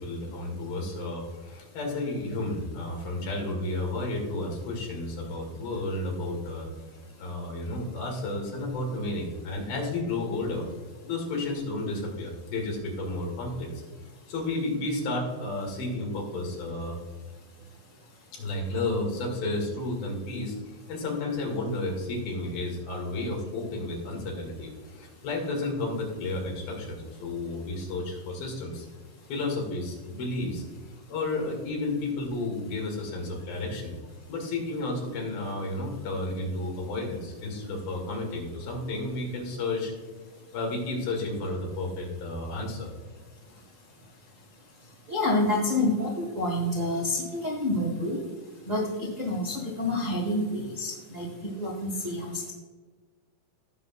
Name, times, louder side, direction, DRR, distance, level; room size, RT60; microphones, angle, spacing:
voice 1, 0.0-6.7 7.2-10.7 11.0-13.8 14.3-17.0 18.3-20.6 20.9-28.9 29.3-30.6 31.1-33.9 34.3-39.9 40.5-42.9, left 2 dB, 80° left, -1 dB, 3.8 m, -32 dB
voice 2, 45.1-48.2 48.6-52.5, left 1 dB, 70° right, -3 dB, 0.7 m, -28 dB
17.0 x 6.0 x 2.4 m, 1.4 s
omnidirectional pair, 4.1 m